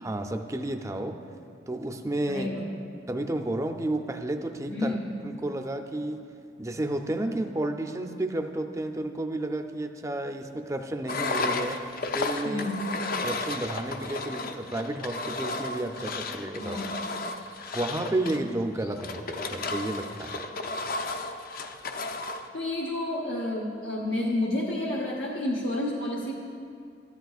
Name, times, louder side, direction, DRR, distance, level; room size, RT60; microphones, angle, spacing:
voice 1, 0.0-1.2 1.7-2.5 3.1-5.0 5.2-6.3 6.6-11.9 12.1-12.7 13.2-16.8 17.7-20.5, right 1 dB, 15° right, 6 dB, 0.4 m, -31 dB
voice 2, 2.3-2.6 4.7-5.1 12.4-12.8 16.6-16.9 22.5-26.3, left 1 dB, 85° left, -2 dB, 0.9 m, -30 dB
Engine, 11.1-22.5, left 3 dB, 55° left, 0.5 m, -33 dB
13.5 x 10.5 x 2.4 m, 2.3 s
head